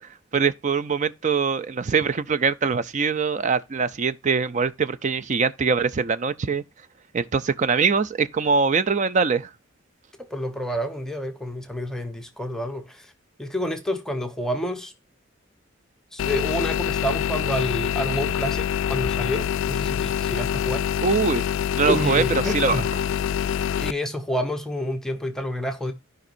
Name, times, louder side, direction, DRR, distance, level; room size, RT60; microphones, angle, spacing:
voice 1, 0.3-6.6 7.1-9.5 21.0-21.4 21.8-22.8, right 5 dB, 40° right, 0.4 m, -23 dB
voice 2, 10.2-13.1 13.4-14.9 16.1-20.9 21.9-22.9 23.8-25.9, equal, 5° left, 0.8 m, -29 dB
sound 1, 16.2-23.9, left 9 dB, 75° left, 0.3 m, -25 dB
15.0 x 5.2 x 2.5 m
head